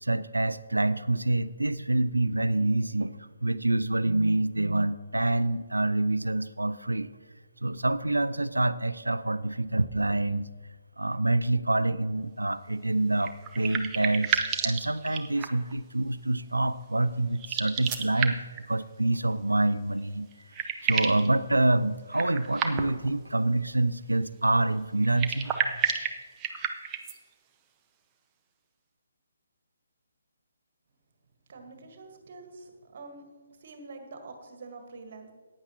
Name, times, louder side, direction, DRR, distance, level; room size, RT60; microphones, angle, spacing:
voice 1, 0.0-7.1 7.6-10.5 11.0-18.4 18.7-20.3 20.8-25.5, right 2 dB, 80° right, 15 dB, 0.5 m, -26 dB
sound 1, 13.2-15.7 17.3-18.6 20.0-20.1 20.3-21.3 22.1-23.1 25.0-27.2, right 7 dB, 20° right, 0.7 m, -31 dB
voice 2, 31.5-33.3 33.6-35.3, right 3 dB, 45° right, 5 dB, 1.5 m, -46 dB
15.0 x 9.6 x 3.0 m, 1.4 s
figure-of-eight pair, 140°, 0 cm